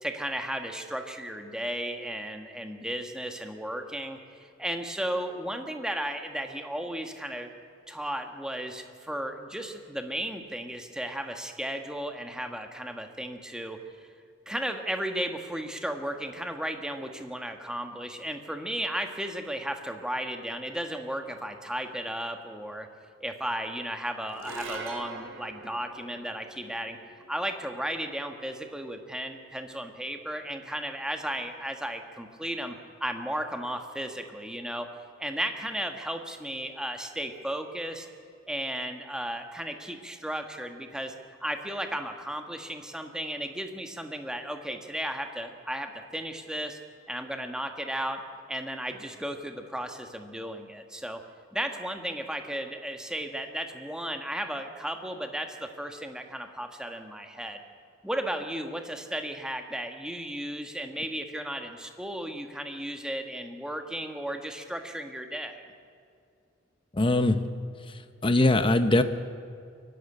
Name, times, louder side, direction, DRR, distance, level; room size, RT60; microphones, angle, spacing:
voice 1, 0.0-7.5 7.9-14.1 14.5-22.9 23.2-27.0 27.3-34.9 35.2-38.1 38.5-41.1 41.4-46.8 47.1-48.2 48.5-51.2 51.5-57.6 58.0-65.6, right 1 dB, 5° right, 5 dB, 1.4 m, -34 dB
sound 1, 24.3-30.8, right 3 dB, 75° right, 2.6 m, -45 dB
voice 2, 67.0-67.4 68.2-69.0, left 2 dB, 25° left, 9 dB, 0.8 m, -21 dB
23.0 x 11.5 x 9.8 m, 2.3 s
head